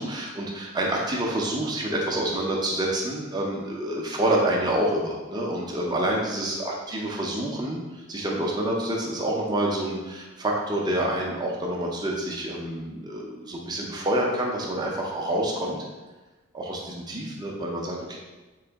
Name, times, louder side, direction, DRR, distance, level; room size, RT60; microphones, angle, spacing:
voice 1, 0.0-15.8 16.5-18.2, right 1 dB, 20° right, -2 dB, 0.5 m, -27 dB
3.8 x 2.6 x 3.4 m, 1.2 s
head